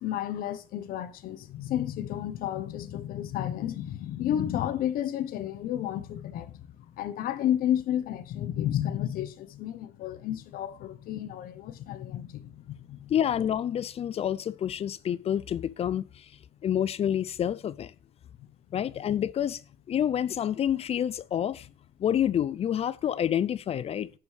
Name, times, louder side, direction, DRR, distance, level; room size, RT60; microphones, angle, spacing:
voice 1, 0.0-6.6 6.9-13.1, left 11 dB, 75° left, 1.1 m, -31 dB
voice 2, 13.1-16.3 16.6-17.9 18.7-19.6 19.9-21.7 22.0-24.2, left 10 dB, 40° left, 0.5 m, -28 dB
10.5 x 5.3 x 6.4 m
cardioid pair, 130°, 15 cm